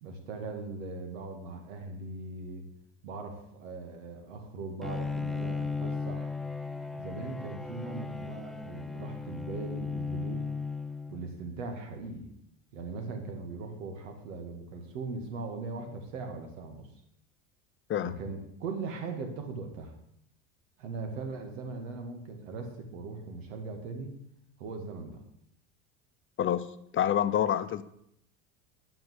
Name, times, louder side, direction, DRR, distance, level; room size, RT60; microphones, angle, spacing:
voice 1, 0.0-2.6 3.0-6.3 6.9-10.4 11.1-12.3 12.7-16.9 18.0-19.9 20.8-24.1 24.6-25.2, right 3 dB, 90° right, 4 dB, 2.2 m, -39 dB
Bowed string instrument, 4.8-11.5, left 4 dB, ahead, 0.3 m, -36 dB
voice 2, 26.9-27.8, left 10 dB, 35° left, 12 dB, 0.8 m, -27 dB
9.3 x 5.7 x 8.1 m, 0.74 s
supercardioid pair, 105°, 37 cm